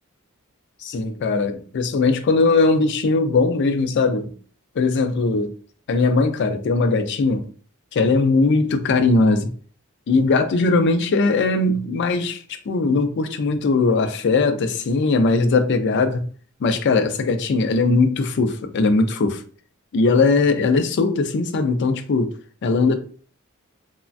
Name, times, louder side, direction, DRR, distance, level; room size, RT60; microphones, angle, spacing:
voice 1, 0.8-4.3 4.8-5.5 5.9-7.5 7.9-9.5 10.1-16.3 16.6-19.4 19.9-22.3 22.6-23.0, left 3 dB, 55° left, 0.4 m, -19 dB
3.2 x 2.1 x 2.5 m
head